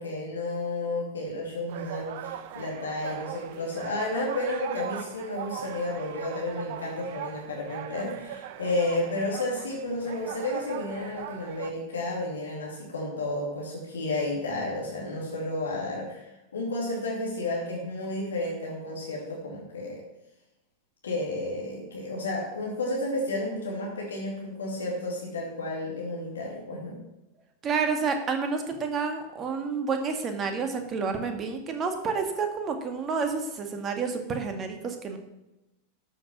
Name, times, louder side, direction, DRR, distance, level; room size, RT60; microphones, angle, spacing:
voice 1, 0.0-20.0 21.0-27.0, left 2 dB, 70° left, -2 dB, 2.5 m, -32 dB
sound 1, 1.7-11.7, right 10 dB, 50° right, 0.8 m, -40 dB
voice 2, 27.6-35.2, right 5 dB, 25° right, 5 dB, 2.0 m, -29 dB
12.5 x 6.6 x 6.2 m, 0.95 s
figure-of-eight pair, 90°, 0 cm